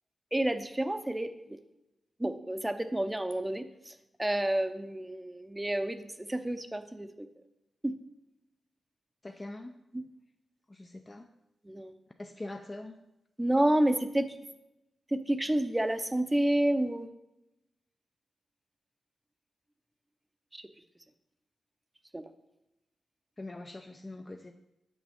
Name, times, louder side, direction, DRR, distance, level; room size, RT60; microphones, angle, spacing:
voice 1, 0.3-1.3 2.2-3.9 4.2-7.3 7.8-7.9 9.9-10.0 11.7-11.9 13.4-14.3 15.1-17.1 20.5-20.6 22.1-22.2, right 1 dB, 15° right, 9 dB, 0.6 m, -29 dB
voice 2, 9.2-9.7 10.7-11.3 12.2-13.0 23.4-24.5, left 2 dB, 30° left, 4 dB, 0.5 m, -43 dB
7.2 x 6.1 x 3.6 m, 0.92 s
cardioid pair, 55°, 0 cm